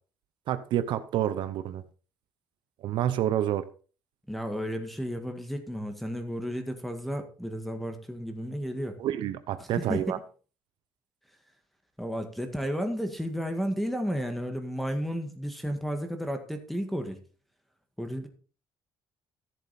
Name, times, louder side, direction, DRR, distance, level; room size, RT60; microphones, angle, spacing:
voice 1, 0.5-1.8 2.8-3.6 9.0-10.2, right 11 dB, 65° right, 0.8 m, -28 dB
voice 2, 4.3-9.0 9.6-10.2 12.0-17.2 18.0-18.3, equal, ahead, 1.8 m, -33 dB
14.0 x 7.5 x 4.2 m
cardioid pair, 150°, 9 cm